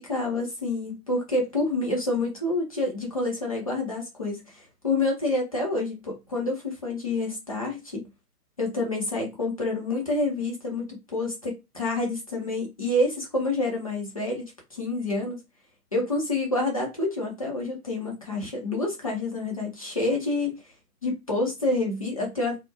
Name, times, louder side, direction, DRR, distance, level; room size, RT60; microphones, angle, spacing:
voice 1, 0.0-4.4 4.8-8.0 8.6-14.5 14.7-15.4 15.9-20.5 21.0-22.6, left 2 dB, 25° left, 0.4 m, -28 dB
2.2 x 2.0 x 2.7 m
figure-of-eight pair, 130°, 47 cm